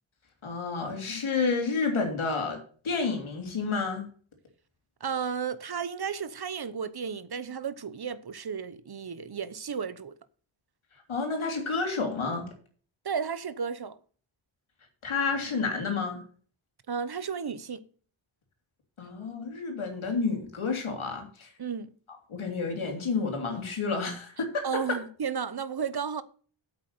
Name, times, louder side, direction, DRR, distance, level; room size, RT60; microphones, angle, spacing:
voice 1, 0.4-2.6 2.8-4.0 11.1-12.5 15.0-16.2 19.0-21.5 22.3-25.0, left 4 dB, 80° left, 3.3 m, -30 dB
voice 2, 5.0-10.1 13.0-14.0 16.9-17.8 21.6-21.9 24.6-26.2, right 6 dB, 50° right, 1.0 m, -33 dB
8.4 x 8.2 x 6.7 m
wide cardioid pair, 100°, 48 cm